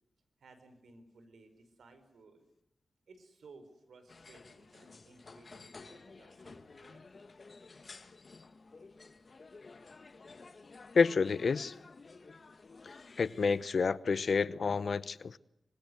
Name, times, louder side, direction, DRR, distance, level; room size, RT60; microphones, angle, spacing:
voice 1, 0.4-2.4 3.1-7.0, right 3 dB, 85° right, 4.9 m, -58 dB
sound 1, 4.1-13.7, left 3 dB, 50° left, 1.7 m, -53 dB
voice 2, 10.9-11.7 13.2-15.4, left 5 dB, 65° left, 0.9 m, -29 dB
26.0 x 21.5 x 8.0 m
wide cardioid pair, 80°, 0 cm